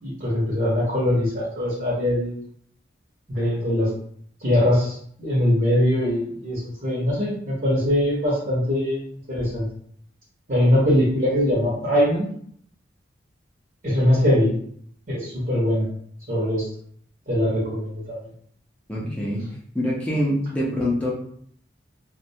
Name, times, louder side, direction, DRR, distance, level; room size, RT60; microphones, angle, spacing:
voice 1, 0.0-2.4 3.3-3.9 4.4-9.7 10.5-12.3 13.8-14.6 15.1-15.9 16.3-16.7 17.3-18.3, left 1 dB, 45° right, -7 dB, 0.8 m, -22 dB
voice 2, 18.9-19.4 19.7-21.1, equal, 5° left, -6 dB, 0.5 m, -24 dB
2.2 x 2.1 x 2.7 m, 0.62 s
head